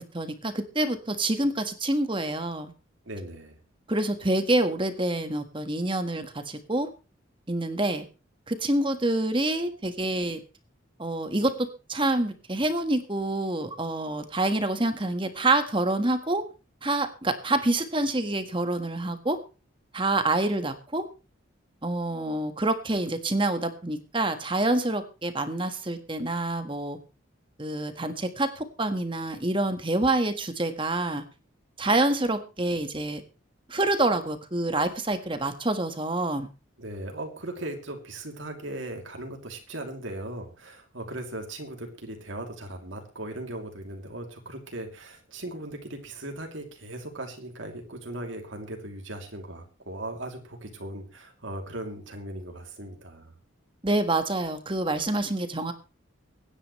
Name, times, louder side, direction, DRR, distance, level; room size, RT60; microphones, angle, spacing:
voice 1, 0.0-2.7 3.9-6.9 7.5-8.0 8.5-10.4 11.0-16.4 16.8-19.4 19.9-21.0 21.8-27.0 27.6-31.2 31.8-33.2 33.7-36.5 53.8-55.7, right 2 dB, 25° right, 9 dB, 1.5 m, -27 dB
voice 2, 3.0-3.6 36.8-53.3, right 1 dB, 70° right, 3 dB, 2.9 m, -38 dB
24.0 x 10.0 x 3.2 m, 0.32 s
head